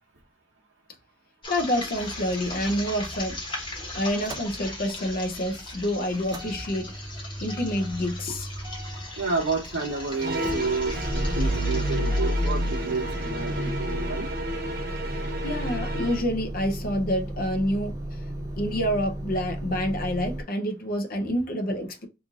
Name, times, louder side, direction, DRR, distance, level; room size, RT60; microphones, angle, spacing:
sound 1, 1.4-14.3, left 2 dB, 25° left, 1.0 m, -39 dB
voice 1, 1.5-3.5 3.9-7.0 7.4-8.5 15.4-18.2 18.6-22.1, equal, 50° left, 0.6 m, -28 dB
Motor vehicle (road) / Engine starting / Idling, 2.0-5.1 5.4-20.4, equal, 20° right, 0.5 m, -32 dB
voice 2, 9.2-14.3, right 3 dB, 80° right, 0.9 m, -30 dB
sound 2, 10.2-16.3, right 1 dB, 50° right, 0.8 m, -33 dB
3.0 x 2.5 x 3.5 m
head